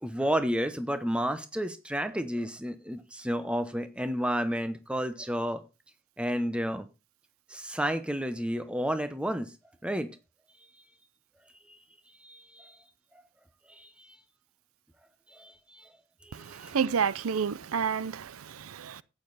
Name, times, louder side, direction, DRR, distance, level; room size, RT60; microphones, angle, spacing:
voice 1, 0.0-5.6 6.2-6.9 7.5-9.5 9.8-10.1 12.2-12.8 13.7-14.1 15.3-15.9 16.2-16.8, equal, 5° right, 0.9 m, -31 dB
voice 2, 16.3-19.0, right 6 dB, 85° right, 0.5 m, -30 dB
11.5 x 8.9 x 4.1 m
head